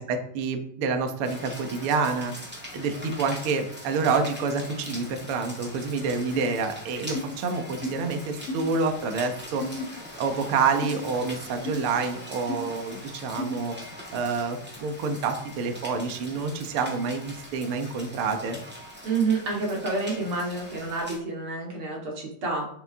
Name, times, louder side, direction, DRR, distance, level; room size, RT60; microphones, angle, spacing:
voice 1, 0.0-2.3 2.7-9.6 10.2-13.7 14.1-18.6, right 4 dB, 75° right, 6 dB, 1.2 m, -28 dB
Rain, 1.2-21.2, left 1 dB, 10° right, 0.6 m, -42 dB
sound 1, 6.3-6.5 7.1-7.3 7.8-8.0 8.5-8.7 9.6-9.8 10.8-11.0 11.6-11.8 12.5-12.6 13.4-13.6, left 1 dB, 65° left, 3.2 m, -32 dB
voice 2, 19.0-22.6, right 3 dB, 40° right, -2 dB, 2.9 m, -28 dB
11.0 x 8.2 x 3.6 m, 0.67 s
omnidirectional pair, 4.3 m